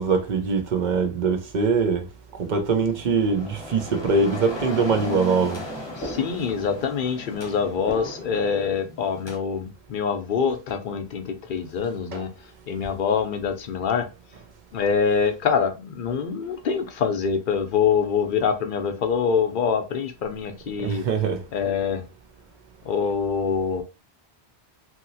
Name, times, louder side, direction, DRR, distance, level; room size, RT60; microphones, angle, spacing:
voice 1, 0.0-2.1 2.4-5.6 12.1-12.2 20.8-21.4, right 4 dB, 50° right, 0.7 m, -23 dB
sound 1, 2.9-9.4, right 1 dB, 25° left, 0.8 m, -35 dB
voice 2, 5.9-12.3 12.7-14.1 14.7-21.1 21.5-22.0 22.8-23.8, left 6 dB, 60° left, 0.7 m, -25 dB
2.8 x 2.7 x 2.7 m
omnidirectional pair, 1.1 m